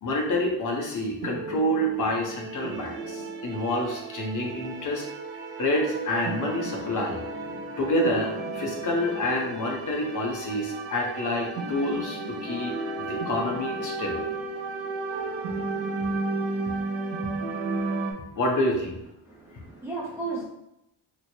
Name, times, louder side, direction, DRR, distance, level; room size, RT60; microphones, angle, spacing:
voice 1, 0.0-5.1 5.6-7.2 7.8-14.3 18.4-19.0, left 1 dB, 40° left, 1 dB, 0.7 m, -28 dB
sound 1, 1.2-18.1, right 3 dB, 80° right, 0.7 m, -33 dB
voice 2, 19.2-20.5, right 3 dB, 5° right, -5 dB, 0.4 m, -34 dB
3.1 x 2.1 x 4.2 m, 0.82 s
cardioid pair, 140°, 47 cm